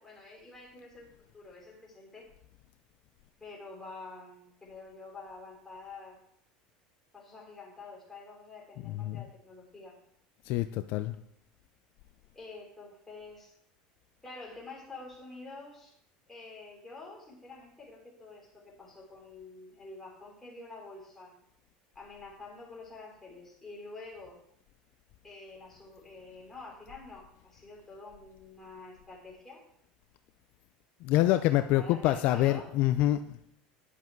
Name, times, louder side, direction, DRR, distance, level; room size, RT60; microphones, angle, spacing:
voice 1, 0.0-2.3 3.4-6.2 7.1-9.9 12.3-13.5 14.2-15.9 16.3-21.4 21.9-24.4 25.2-29.6 31.2-32.7, left 3 dB, 10° left, -3 dB, 3.3 m, -48 dB
voice 2, 8.9-9.2 10.5-11.1 31.0-33.4, left 14 dB, 55° left, 10 dB, 0.5 m, -26 dB
10.0 x 7.4 x 4.6 m, 0.68 s
cardioid pair, 145°, 3 cm